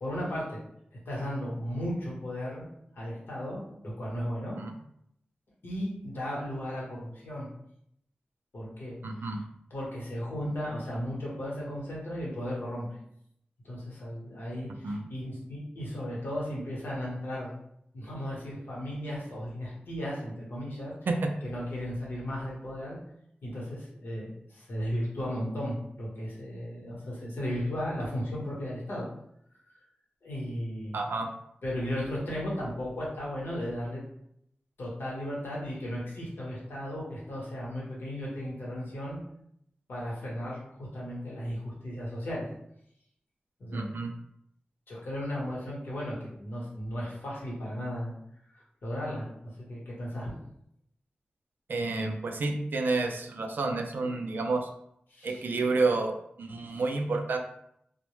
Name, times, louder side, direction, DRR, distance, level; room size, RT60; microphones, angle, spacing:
voice 1, 0.0-0.6 0.9-2.6 2.9-4.6 5.6-7.5 8.5-9.3 9.7-12.9 13.6-17.5 17.9-20.9 21.4-23.0 23.4-29.1 30.2-31.0 31.6-34.0 34.8-39.2 39.9-42.5 43.6-43.8 44.9-48.1 48.5-50.3 55.1-55.4 56.7-56.8, equal, 75° left, -5 dB, 0.9 m, -35 dB
voice 2, 9.0-9.4 14.8-15.0 21.1-21.3 30.9-31.3 43.7-44.1 51.7-54.7 55.2-57.4, right 3 dB, 65° right, 4 dB, 0.3 m, -30 dB
2.1 x 2.0 x 3.0 m, 0.74 s
wide cardioid pair, 105°, 4 cm